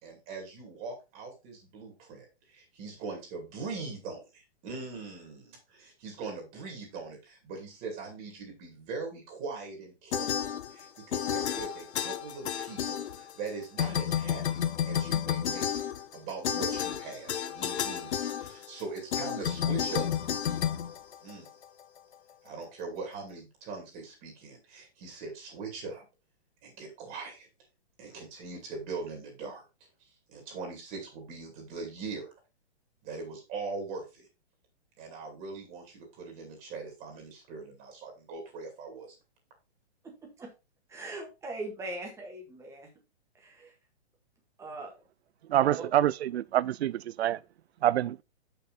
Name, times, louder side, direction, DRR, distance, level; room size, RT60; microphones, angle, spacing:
voice 1, 0.0-15.7 16.1-20.1 21.2-21.5 22.4-26.0 26.6-27.5 28.0-29.6 30.3-32.3 33.0-34.3 35.0-39.1, right 4 dB, 25° right, 2.5 m, -41 dB
sound 1, 10.1-10.9 11.1-13.5 13.8-21.6, left 9 dB, 80° left, 0.8 m, -31 dB
voice 2, 40.0-40.5 40.9-42.9 43.4-43.7 44.6-45.0 45.8-45.9, right 2 dB, 10° right, 1.7 m, -41 dB
voice 3, 45.5-47.4 47.8-48.2, right 12 dB, 70° right, 0.5 m, -26 dB
6.4 x 5.9 x 4.1 m
hypercardioid pair, 155°, 33 cm